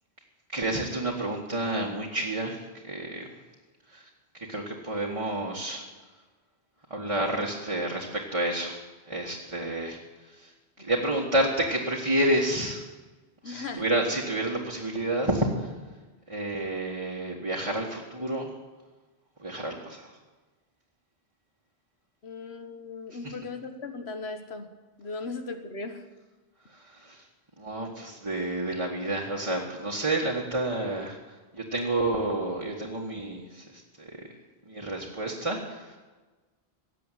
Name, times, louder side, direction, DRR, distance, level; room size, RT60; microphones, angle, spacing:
voice 1, 0.5-3.3 3.9-4.1 4.3-5.8 6.9-8.8 9.1-10.5 10.8-12.8 13.4-15.7 16.3-18.6 19.4-20.1 23.2-23.3 26.7-27.2 27.6-31.2 31.5-34.3 34.6-36.0, right 1 dB, 30° right, -3 dB, 1.7 m, -30 dB
voice 2, 13.4-13.9 22.2-24.7 25.0-26.0, left 3 dB, 85° left, 7 dB, 1.6 m, -37 dB
17.5 x 7.6 x 9.1 m, 1.3 s
omnidirectional pair, 1.0 m